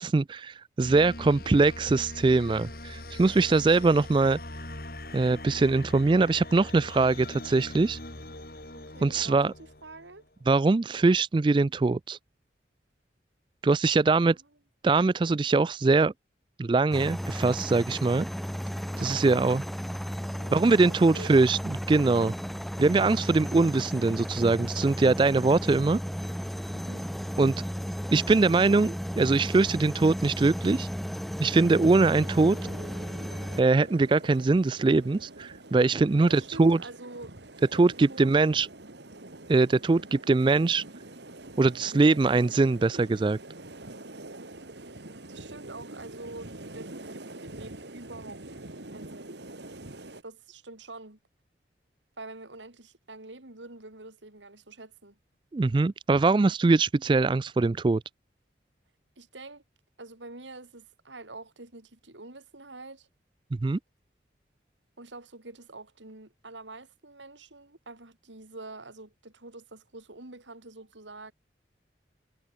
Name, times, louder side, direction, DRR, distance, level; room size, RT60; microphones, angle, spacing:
voice 1, 0.0-4.4 5.1-8.0 9.0-9.5 10.5-12.2 13.6-14.4 14.8-16.1 16.6-18.3 19.0-19.6 20.5-22.3 22.8-26.0 27.4-27.6 28.1-30.9 31.4-32.6 33.6-36.8 37.7-38.7 39.5-40.8 41.6-43.4 55.5-58.0 63.6-63.8, right 3 dB, 25° right, 0.3 m, -22 dB
sound 1, 0.8-10.2, left 1 dB, 55° left, 5.8 m, -42 dB
voice 2, 8.7-10.2 14.3-14.5 19.0-19.5 20.4-21.5 26.7-27.1 36.2-37.4 37.7-38.3 45.3-48.4 48.9-49.3 50.2-51.2 52.2-55.2 59.2-59.6 60.0-63.1 65.0-71.3, right 2 dB, 90° right, 3.3 m, -46 dB
sound 2, 16.9-33.6, equal, ahead, 1.1 m, -34 dB
sound 3, 31.7-50.2, right 2 dB, 70° right, 2.5 m, -45 dB
head